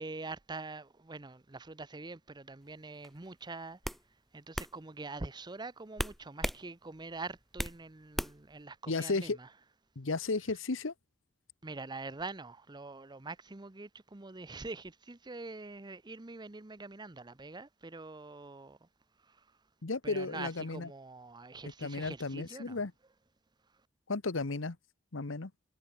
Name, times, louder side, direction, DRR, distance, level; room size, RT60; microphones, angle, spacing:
voice 1, 0.0-3.9 4.3-9.5 11.6-18.9 19.2-19.5 20.0-22.8, right 3 dB, 20° right, 0.8 m, -44 dB
sound 1, 3.0-3.3 3.8-4.0 4.5-4.7 6.0-6.6 7.0-7.8 8.2-8.5, equal, ahead, 0.3 m, -35 dB
voice 2, 8.9-9.4 10.0-10.9 19.8-20.9 21.6-22.9 24.1-24.8 25.1-25.5, left 3 dB, 70° left, 1.1 m, -34 dB
head